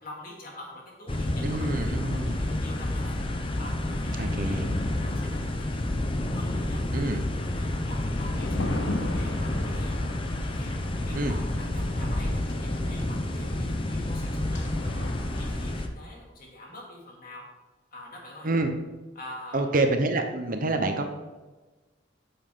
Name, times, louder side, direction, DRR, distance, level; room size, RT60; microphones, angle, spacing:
voice 1, 0.0-1.6 1.9-3.2 3.6-5.9 6.3-6.8 7.4-10.0 10.5-15.1 15.4-17.4 17.9-18.5 19.1-19.6, left 1 dB, 50° left, -2 dB, 2.6 m, -45 dB
sound 1, 1.1-15.9, left 1 dB, 30° left, 0.7 m, -29 dB
voice 2, 1.4-2.4 4.2-4.7 6.9-7.2 11.1-11.3 18.4-18.7 19.5-21.1, right 2 dB, 50° right, 6 dB, 0.9 m, -27 dB
sound 2, 8.1-15.6, left 2 dB, 80° left, 1.1 m, -38 dB
9.3 x 7.0 x 3.9 m, 1.2 s
head